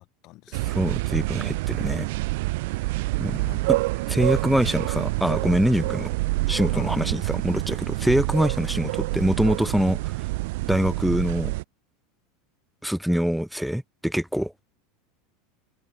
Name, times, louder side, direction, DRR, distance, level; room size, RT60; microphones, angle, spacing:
voice 1, 0.0-0.8 2.7-3.6 4.6-4.7 6.7-7.0, left 20 dB, 55° left, 5.1 m, -46 dB
sound 1, 0.5-11.6, right 22 dB, 70° right, 0.4 m, -27 dB
voice 2, 0.7-2.1 3.2-3.4 4.1-6.1 6.5-10.0 10.7-11.5 12.8-14.5, equal, ahead, 1.1 m, -24 dB
hypercardioid pair, 105°, 0 cm